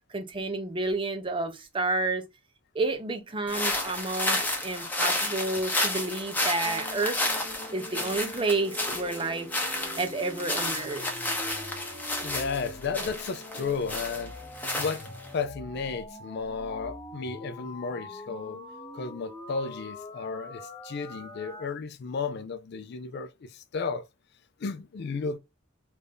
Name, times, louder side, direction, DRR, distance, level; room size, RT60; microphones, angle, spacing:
voice 1, 0.1-2.2 2.7-7.2 7.7-9.5 10.0-11.2, right 3 dB, 25° right, 0.5 m, -30 dB
sound 1, 3.5-15.4, left 1 dB, 10° left, 0.7 m, -31 dB
sound 2, 6.7-21.7, left 1 dB, 25° left, 1.1 m, -43 dB
voice 2, 12.2-14.3 14.8-18.6 18.9-24.1 24.6-25.4, left 5 dB, 50° left, 0.4 m, -33 dB
3.3 x 2.6 x 3.4 m
head